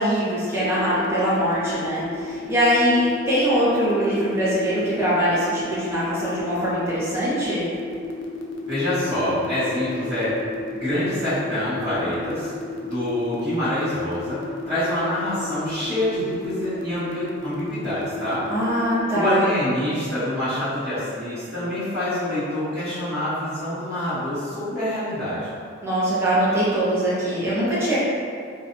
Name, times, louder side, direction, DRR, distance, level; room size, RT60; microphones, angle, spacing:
voice 1, 0.0-7.7 18.5-19.5 25.8-28.0, equal, 15° right, -11 dB, 0.7 m, -22 dB
sound 1, 0.6-19.0, left 3 dB, 65° left, 0.3 m, -33 dB
voice 2, 8.7-10.3 10.7-12.5 12.8-14.4 14.6-18.4 19.1-25.5, left 1 dB, 30° right, -18 dB, 1.0 m, -26 dB
2.6 x 2.5 x 2.2 m, 2.2 s
head